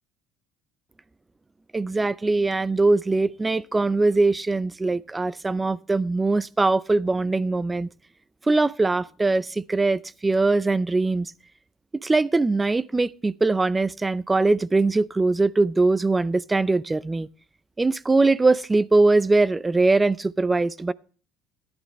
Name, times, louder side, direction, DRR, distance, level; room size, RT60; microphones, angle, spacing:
voice 1, 1.7-7.9 8.5-11.3 12.0-17.3 17.8-20.9, right 3 dB, 15° right, 0.5 m, -21 dB
14.0 x 11.0 x 3.1 m
supercardioid pair, 105°, 0 cm